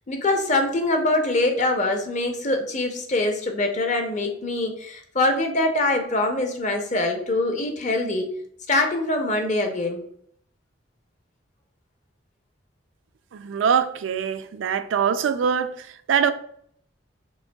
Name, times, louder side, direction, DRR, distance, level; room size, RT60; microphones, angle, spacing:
voice 1, 0.1-8.3 8.7-10.0, left 2 dB, 40° left, 0.6 m, -24 dB
voice 2, 13.3-16.3, right 7 dB, 80° right, 0.3 m, -23 dB
5.3 x 3.2 x 2.2 m
head